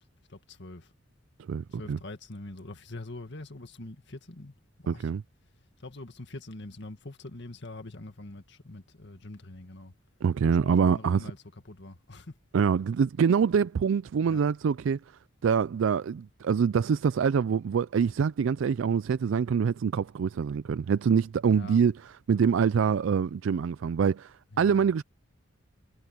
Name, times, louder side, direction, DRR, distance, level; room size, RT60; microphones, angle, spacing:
voice 1, 0.3-0.9 1.7-5.1 5.8-9.9 10.4-11.4 11.7-12.3 14.2-14.5 21.5-21.8 24.5-24.9, left 2 dB, 55° left, 2.0 m, -44 dB
voice 2, 1.5-2.0 4.9-5.2 10.2-11.3 12.5-15.0 15.4-21.9 22.3-25.0, right 6 dB, 65° right, 0.3 m, -25 dB
head